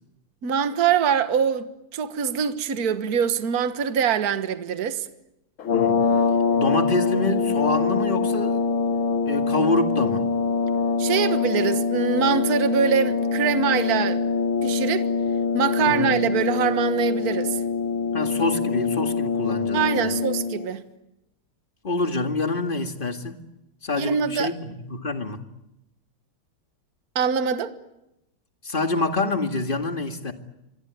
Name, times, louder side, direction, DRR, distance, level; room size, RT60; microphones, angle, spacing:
voice 1, 0.4-1.7 1.9-5.1 11.0-14.2 14.6-15.1 15.5-17.6 19.7-20.8 24.0-24.5 27.2-27.8, right 7 dB, 50° right, 1.7 m, -23 dB
sound 1, 5.6-20.7, left 5 dB, 70° left, 2.3 m, -24 dB
voice 2, 6.5-8.6 9.2-10.2 15.8-16.2 18.1-20.2 21.8-23.4 23.8-25.4 28.6-30.3, left 2 dB, 25° left, 2.1 m, -26 dB
26.0 x 22.5 x 9.4 m
omnidirectional pair, 2.4 m